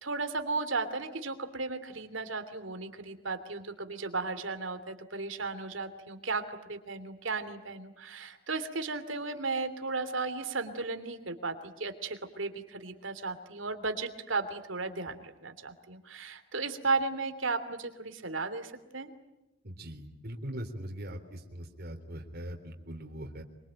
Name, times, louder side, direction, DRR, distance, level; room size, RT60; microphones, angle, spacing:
voice 1, 0.0-19.1, right 3 dB, 75° right, 10 dB, 3.0 m, -35 dB
voice 2, 19.6-23.4, equal, 50° right, 3 dB, 3.5 m, -41 dB
25.5 x 24.5 x 8.9 m, 0.98 s
head